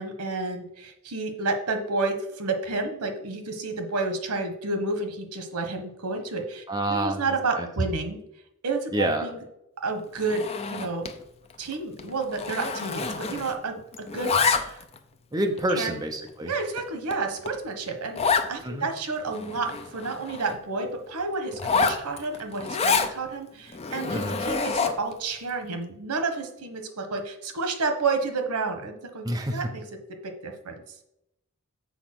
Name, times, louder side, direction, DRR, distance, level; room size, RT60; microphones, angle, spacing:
voice 1, 0.0-6.6 6.9-8.2 8.6-9.4 9.8-10.4 10.7-11.1 11.6-14.8 15.7-15.9 16.4-29.8 30.4-30.8, right 3 dB, 90° right, 6 dB, 1.2 m, -30 dB
voice 2, 6.7-7.2 7.5-7.7 8.9-9.3 15.3-16.5 18.6-18.9 24.1-24.4 29.2-29.6, right 1 dB, 15° right, 4 dB, 0.7 m, -27 dB
Zipper (clothing), 10.2-11.2 11.5-11.7 12.0-13.7 13.9-15.0 15.6-15.7 16.3-16.4 16.8-16.9 17.1-17.2 17.5-17.6 18.2-18.5 19.0-19.1 19.3-20.6 21.5-23.1 23.7-25.1, left 4 dB, 25° left, 0.5 m, -27 dB
7.1 x 4.3 x 6.0 m, 0.82 s
head